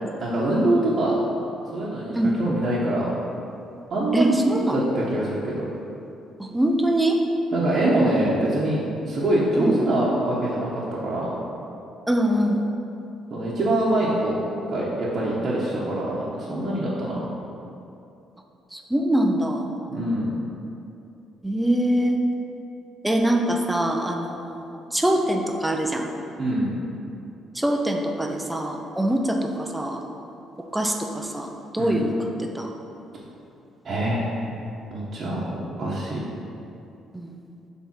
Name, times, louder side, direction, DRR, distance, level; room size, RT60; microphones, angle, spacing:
voice 1, 0.2-1.2 1.7-2.1 2.4-3.1 3.9-5.6 7.5-11.3 13.3-14.4 14.7-17.2 19.9-20.3 26.4-26.7 31.8-32.0 33.8-34.3 34.9-35.4 35.8-36.2, right 1 dB, 40° right, -7 dB, 1.1 m, -24 dB
voice 2, 4.1-4.8 6.4-7.2 9.5-9.8 12.1-12.6 18.7-19.7 21.4-22.2 23.0-26.0 27.5-30.0 30.7-32.1 32.5-32.7 37.1-37.3, right 1 dB, 5° right, 2 dB, 0.6 m, -23 dB
7.4 x 3.5 x 5.7 m, 2.7 s
cardioid pair, 140°, 0 cm